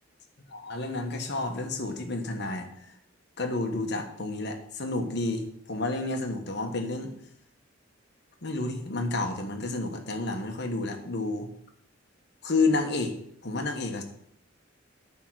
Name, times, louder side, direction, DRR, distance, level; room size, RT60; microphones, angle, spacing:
voice 1, 0.5-2.7 3.4-7.1 8.4-11.5 12.4-13.2 13.4-14.0, left 2 dB, 60° left, 4 dB, 1.3 m, -30 dB
9.9 x 3.8 x 6.3 m, 0.69 s
head